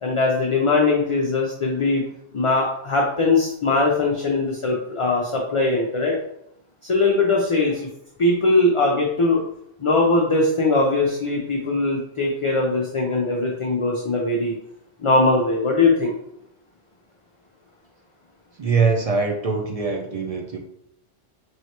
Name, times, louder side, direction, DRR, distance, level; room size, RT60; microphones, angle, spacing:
voice 1, 0.0-2.0 2.3-6.2 6.8-7.9 8.2-9.4 9.8-14.5 15.0-16.1, left 3 dB, 40° left, -2 dB, 0.5 m, -20 dB
voice 2, 18.6-20.6, right 4 dB, 50° right, 1 dB, 0.4 m, -22 dB
4.5 x 3.1 x 2.9 m, 0.75 s
omnidirectional pair, 1.1 m